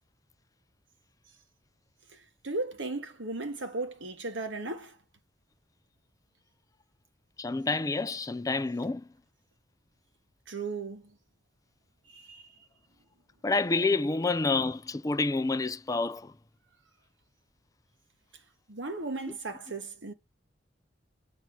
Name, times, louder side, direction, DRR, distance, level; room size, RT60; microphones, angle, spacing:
voice 1, 2.4-4.9 10.5-11.0 12.3-12.4 18.7-20.1, right 3 dB, 75° right, 1.4 m, -35 dB
voice 2, 7.4-9.1 13.4-16.3, left 3 dB, 20° left, 0.4 m, -28 dB
8.7 x 3.0 x 6.0 m
head